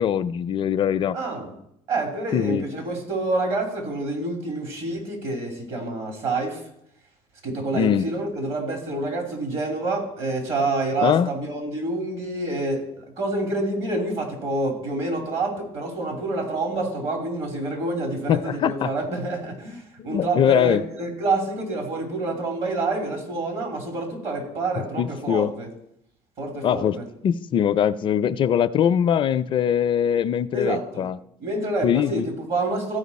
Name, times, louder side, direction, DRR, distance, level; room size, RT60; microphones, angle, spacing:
voice 1, 0.0-1.2 2.3-2.7 7.7-8.1 11.0-11.3 18.3-18.9 20.0-20.8 25.0-25.5 26.6-27.0 27.2-31.2 31.8-32.3, left 9 dB, 45° left, 0.4 m, -22 dB
voice 2, 1.1-1.5 1.9-6.6 7.4-25.7 26.4-27.0 30.5-31.0 31.4-33.0, right 2 dB, 55° right, 2.9 m, -27 dB
14.5 x 4.9 x 4.1 m
supercardioid pair, 100°, 12 cm